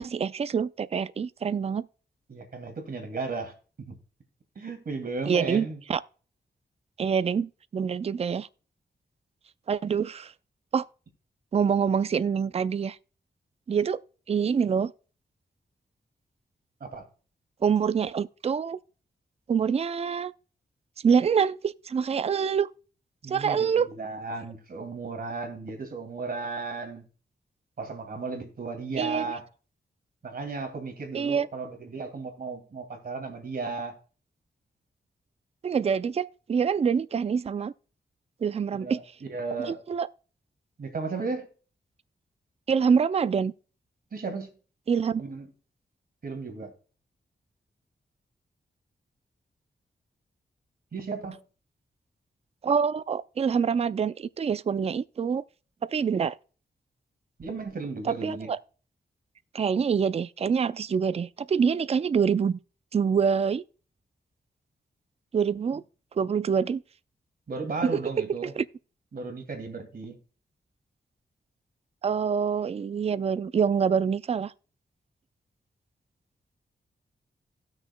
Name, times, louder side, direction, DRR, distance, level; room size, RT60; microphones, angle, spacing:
voice 1, 0.0-1.9 5.3-6.0 7.0-8.5 9.7-10.3 10.7-10.8 11.5-13.0 13.7-14.0 14.3-14.9 17.6-18.8 19.5-20.3 21.0-22.7 23.3-23.9 29.0-29.2 31.1-31.5 35.6-37.7 38.4-39.0 39.7-40.1 42.7-43.5 44.9-45.2 52.6-55.4 55.9-56.4 58.1-58.6 59.5-62.6 62.9-63.6 65.3-65.8 66.2-66.8 67.8-68.3 68.6-68.7 72.0-74.5, right 6 dB, 35° right, 0.4 m, -25 dB
voice 2, 2.3-4.0 4.6-5.8 16.8-17.1 23.2-27.0 27.8-29.4 30.2-33.9 38.8-39.8 40.8-41.5 44.1-44.5 45.2-45.5 46.2-46.7 50.9-51.4 57.4-58.5 67.5-68.5 69.1-70.2, right 4 dB, 55° right, 2.4 m, -35 dB
17.5 x 6.4 x 2.2 m
wide cardioid pair, 120°, 18 cm